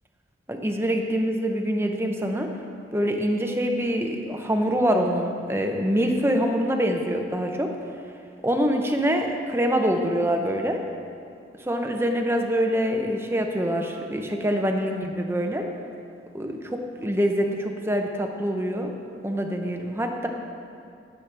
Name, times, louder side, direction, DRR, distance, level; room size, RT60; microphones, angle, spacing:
voice 1, 0.5-2.5 2.9-7.7 8.4-10.8 11.6-15.7 16.3-18.9 19.2-20.3, equal, 15° right, 3 dB, 0.7 m, -25 dB
18.0 x 7.3 x 3.4 m, 2.5 s
head